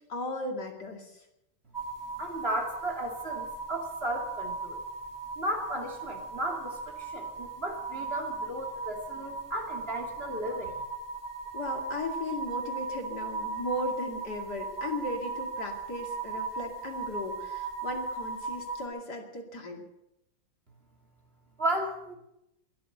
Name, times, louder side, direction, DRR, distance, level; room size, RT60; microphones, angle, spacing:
voice 1, 0.1-1.1 11.5-19.8, left 1 dB, 55° left, 2 dB, 3.0 m, -36 dB
sound 1, 1.7-18.9, right 4 dB, 10° left, 2.5 m, -37 dB
voice 2, 2.2-4.8 5.4-10.8 21.6-22.1, right 1 dB, 30° right, 2 dB, 2.7 m, -34 dB
22.5 x 7.8 x 7.9 m, 0.86 s
omnidirectional pair, 2.2 m